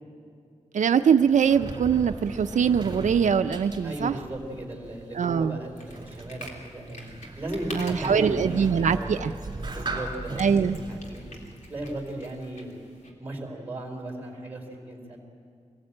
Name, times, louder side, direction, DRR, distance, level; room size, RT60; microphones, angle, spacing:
voice 1, 0.7-4.1 5.1-5.6 7.7-9.3 10.4-10.8, right 7 dB, 90° right, 8 dB, 0.6 m, -22 dB
Sliding door, 1.0-12.4, right 2 dB, 35° right, 3.0 m, -39 dB
voice 2, 3.8-7.1 7.4-9.2 9.7-11.4 11.7-12.8 13.2-15.2, right 1 dB, 15° right, 0 dB, 4.1 m, -36 dB
sound 1, 5.8-13.1, left 1 dB, 85° left, 3.4 m, -47 dB
24.0 x 18.5 x 8.7 m, 2.4 s
wide cardioid pair, 170°, 12 cm